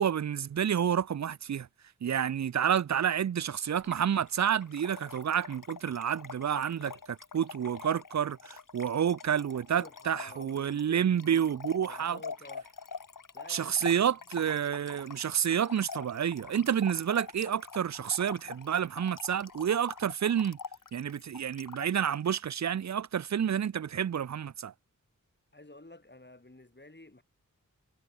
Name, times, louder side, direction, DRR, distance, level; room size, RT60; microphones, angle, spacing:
voice 1, 0.0-1.7 2.0-12.2 13.5-20.6 20.9-24.7, right 8 dB, 60° right, 0.4 m, -29 dB
Trickle dribble / Fill (with liquid), 3.8-22.3, left 5 dB, 75° left, 1.2 m, -45 dB
voice 2, 9.7-12.7 13.3-14.2 25.5-27.2, left 2 dB, 35° left, 5.3 m, -51 dB
wide cardioid pair, 60°, 32 cm